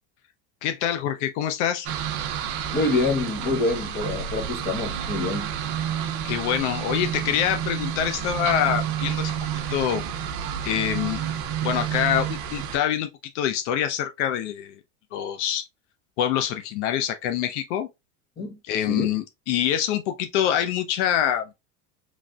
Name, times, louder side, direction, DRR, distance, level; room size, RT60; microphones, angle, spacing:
voice 1, 0.6-1.9 6.2-9.3 9.7-10.0 10.6-11.2 11.6-13.1 13.3-14.7 15.1-15.6 16.2-17.9 18.6-21.4, left 10 dB, 75° left, 0.5 m, -25 dB
sound 1, 1.9-12.8, right 9 dB, 60° right, 0.6 m, -30 dB
voice 2, 2.7-5.5 18.4-18.6 18.9-19.1, left 2 dB, 25° left, 0.9 m, -26 dB
3.2 x 2.5 x 2.2 m
supercardioid pair, 115°, 36 cm